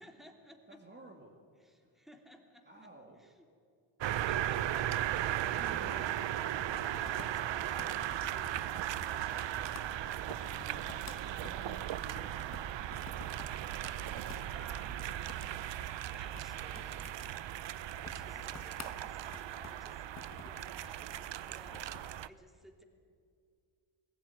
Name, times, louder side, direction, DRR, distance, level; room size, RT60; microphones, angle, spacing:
voice 1, 0.0-0.8 1.6-2.9 3.2-3.4 7.0-9.5 14.5-15.0 16.1-17.1 18.0-20.0 20.4-22.8, equal, ahead, 3 dB, 2.8 m, -57 dB
voice 2, 0.7-1.3 1.8-2.0 2.6-3.3 5.6-6.1 10.4-12.8, right 2 dB, 20° right, 1 dB, 2.2 m, -54 dB
sound 1, 4.0-22.3, right 12 dB, 60° right, 0.7 m, -37 dB
sound 2, 4.3-22.1, left 4 dB, 30° left, 1.5 m, -53 dB
21.0 x 15.5 x 9.7 m, 2.3 s
cardioid pair, 105°, 50 cm